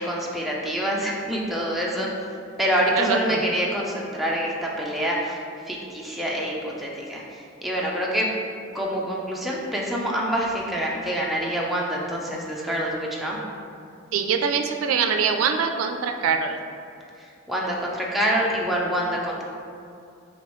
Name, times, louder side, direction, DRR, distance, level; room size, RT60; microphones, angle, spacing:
voice 1, 0.0-2.1 2.6-5.4 5.7-8.3 8.7-13.4 17.2-19.4, equal, ahead, -4 dB, 0.5 m, -26 dB
voice 2, 2.9-3.4 14.1-16.6, right 6 dB, 80° right, 5 dB, 0.3 m, -23 dB
4.8 x 3.0 x 3.0 m, 2.4 s
head